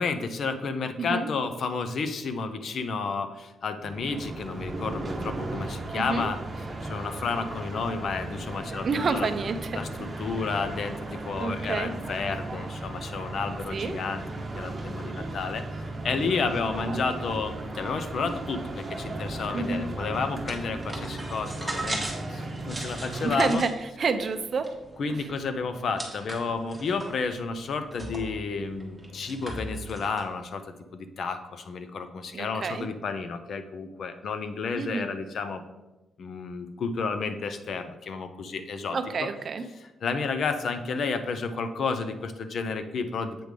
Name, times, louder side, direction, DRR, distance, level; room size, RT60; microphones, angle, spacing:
voice 1, 0.0-6.4 6.8-9.3 9.7-14.2 14.6-23.6 25.0-35.6 36.2-39.0 40.0-43.4, left 4 dB, 55° left, 9 dB, 0.5 m, -31 dB
voice 2, 1.0-1.3 5.9-6.3 8.8-10.1 11.4-11.9 13.7-13.9 19.5-19.8 23.2-24.7 25.1-25.3 32.3-32.9 34.7-35.1 38.9-39.6, right 4 dB, 40° right, 9 dB, 0.5 m, -29 dB
sound 1, 3.8-23.5, right 2 dB, 20° right, 1.0 m, -36 dB
sound 2, 20.5-30.2, right 2 dB, 5° right, 1.2 m, -40 dB
7.7 x 3.3 x 5.1 m, 1.0 s
wide cardioid pair, 150°, 0 cm